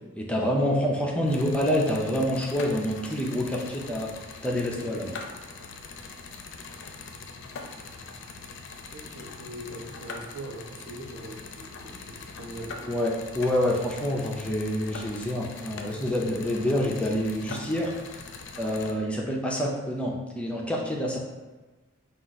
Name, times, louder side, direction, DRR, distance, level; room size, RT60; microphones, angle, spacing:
voice 1, 0.2-4.1 4.4-5.2 12.8-18.2 18.6-21.2, equal, 5° left, -2 dB, 0.5 m, -27 dB
sound 1, 1.3-18.9, left 4 dB, 60° left, 0.4 m, -42 dB
voice 2, 8.9-12.8, right 1 dB, 80° right, -1 dB, 0.9 m, -41 dB
4.7 x 2.4 x 3.9 m, 1.2 s
head